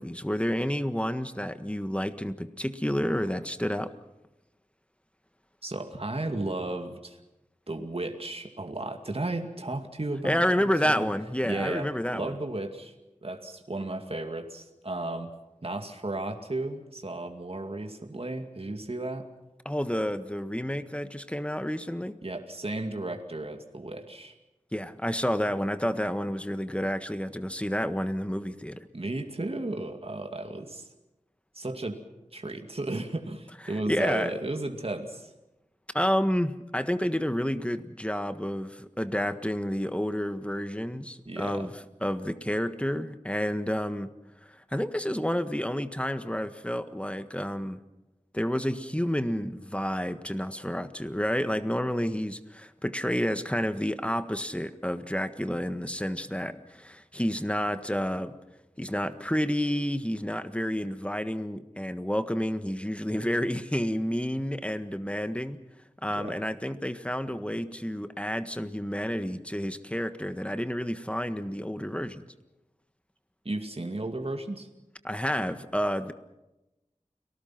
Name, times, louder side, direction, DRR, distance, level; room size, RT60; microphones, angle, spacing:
voice 1, 0.0-3.9 10.2-12.3 19.6-22.1 24.7-28.8 33.9-34.3 35.9-41.7 42.0-44.1 44.4-47.8 48.3-58.3 58.8-65.6 66.0-72.2 75.0-76.1, equal, 10° left, 10 dB, 1.5 m, -30 dB
voice 2, 5.6-7.2 7.7-11.1 11.4-11.9 12.1-12.9 13.2-15.3 15.6-19.3 22.2-24.3 28.9-30.9 31.5-32.0 32.3-35.3 41.3-41.7 66.2-66.4 73.4-74.7, right 2 dB, 50° right, 4 dB, 2.3 m, -34 dB
30.0 x 19.5 x 6.0 m, 0.98 s
wide cardioid pair, 45°, 13 cm